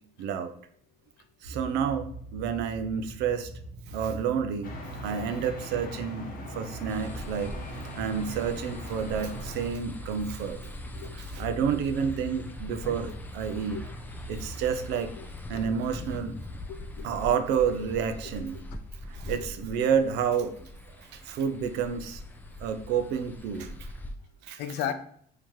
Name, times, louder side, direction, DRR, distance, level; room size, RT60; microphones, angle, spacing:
voice 1, 0.2-0.5 1.4-3.5 3.9-4.7 5.0-7.5 8.0-10.6 11.1-13.8 14.3-15.1 15.5-16.4 17.0-18.6 19.1-20.5 21.3-22.2 22.6-23.8 24.5-24.6, right 7 dB, 85° right, 9 dB, 0.5 m, -29 dB
sound 1, 1.4-14.9, right 2 dB, 60° right, 0.9 m, -43 dB
sound 2, 4.6-9.7, left 1 dB, 55° left, 0.8 m, -41 dB
sound 3, 6.9-24.1, left 1 dB, 10° left, 0.4 m, -42 dB
voice 2, 16.7-17.1 19.3-19.4 24.6-24.9, left 10 dB, 80° left, 10 dB, 0.4 m, -35 dB
3.5 x 2.8 x 3.0 m, 0.65 s
cardioid pair, 110°, 17 cm